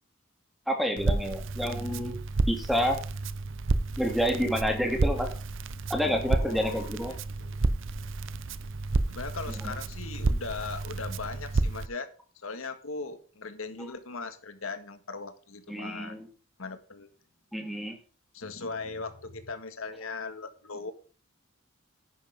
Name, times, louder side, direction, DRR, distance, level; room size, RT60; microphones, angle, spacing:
voice 1, 0.7-2.2 2.5-3.0 4.0-5.3 5.9-7.1 9.6-9.7 15.7-16.3 17.5-18.0, equal, ahead, 3 dB, 2.6 m, -29 dB
Crackle, 1.0-11.9, right 3 dB, 65° right, 0.7 m, -31 dB
voice 2, 6.0-7.6 9.1-12.1 12.4-16.2 16.6-17.1 18.3-20.9, left 4 dB, 85° left, 8 dB, 1.7 m, -39 dB
11.0 x 10.5 x 3.6 m, 0.38 s
head